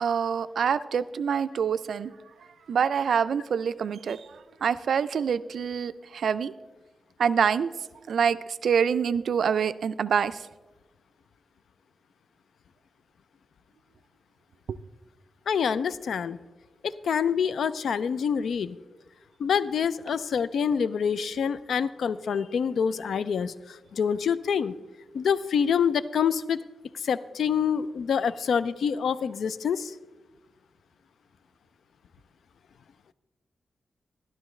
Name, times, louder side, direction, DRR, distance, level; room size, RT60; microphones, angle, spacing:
voice 1, 0.0-2.1 2.7-4.2 4.6-6.5 7.2-7.7 8.1-8.4 8.6-10.4 14.7-14.8, right 7 dB, 80° right, 15 dB, 0.3 m, -25 dB
voice 2, 15.5-16.4 16.8-18.8 19.4-24.7 25.1-26.6 26.9-29.9, left 7 dB, 85° left, 15 dB, 0.4 m, -26 dB
12.0 x 12.0 x 3.2 m, 1.2 s
wide cardioid pair, 105°, 0 cm